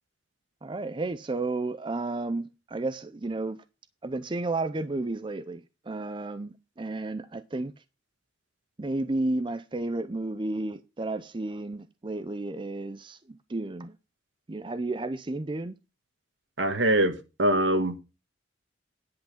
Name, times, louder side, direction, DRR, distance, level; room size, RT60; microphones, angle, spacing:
voice 1, 0.6-3.6 4.0-7.7 8.8-13.9 14.5-15.7, right 2 dB, 25° right, 0.5 m, -32 dB
voice 2, 16.6-18.0, right 1 dB, 70° right, 1.5 m, -23 dB
10.5 x 5.9 x 5.7 m
head